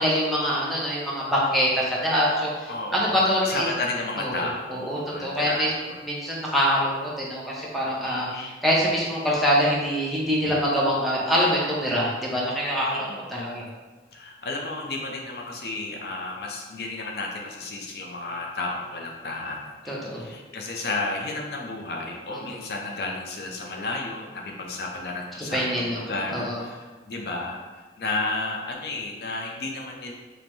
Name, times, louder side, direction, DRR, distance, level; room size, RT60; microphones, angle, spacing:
voice 1, 0.0-2.5 2.9-3.7 4.2-4.3 4.7-5.7 6.0-8.3 8.6-13.6 19.9-20.2 25.5-26.0 26.3-26.6, equal, ahead, -6 dB, 0.6 m, -24 dB
voice 2, 2.7-6.0 8.1-8.5 12.9-13.2 14.1-30.1, left 2 dB, 60° left, 0 dB, 0.5 m, -32 dB
5.2 x 2.1 x 3.0 m, 1.3 s
head